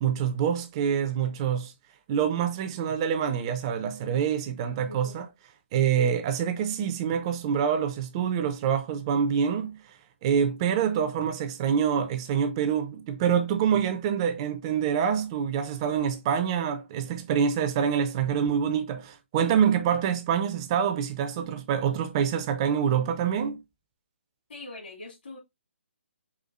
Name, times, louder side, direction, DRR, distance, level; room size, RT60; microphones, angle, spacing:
voice 1, 0.0-1.7 2.1-5.3 5.7-9.8 10.2-23.6, right 8 dB, 25° right, 0.5 m, -26 dB
voice 2, 24.5-25.4, left 2 dB, 55° left, 1.7 m, -42 dB
4.8 x 4.3 x 2.4 m
figure-of-eight pair, 135°, 7 cm